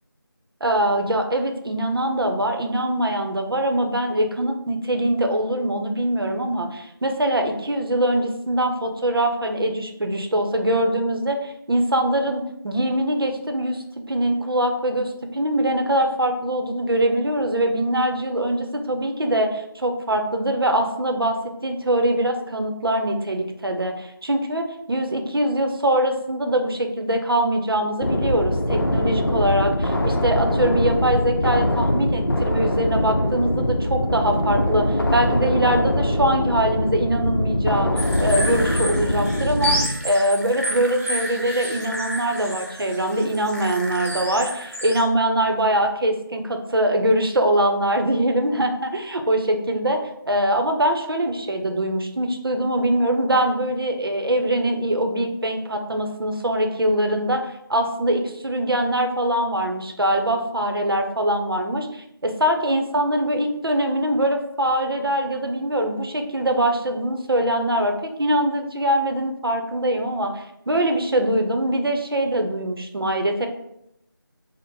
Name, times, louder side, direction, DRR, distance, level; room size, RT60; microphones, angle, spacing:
voice 1, 0.6-37.9 38.2-50.0 50.3-73.5, right 1 dB, 75° right, 5 dB, 0.6 m, -23 dB
sound 1, 28.0-39.9, left 1 dB, 65° left, 0.6 m, -22 dB
sound 2, 38.0-45.0, equal, 40° right, 0.8 m, -30 dB
3.8 x 2.0 x 3.9 m, 0.80 s
figure-of-eight pair, 180°, 12 cm